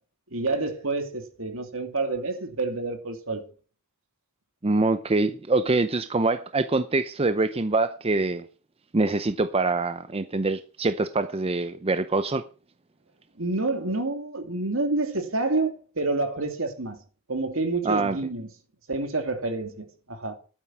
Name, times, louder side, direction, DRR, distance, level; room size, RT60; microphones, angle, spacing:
voice 1, 0.3-3.4 13.4-17.0 17.3-18.5 18.9-20.3, right 3 dB, 70° right, 2.8 m, -28 dB
voice 2, 4.6-8.5 8.9-12.5 17.8-18.2, right 3 dB, 30° right, 0.7 m, -24 dB
12.0 x 9.2 x 5.8 m
head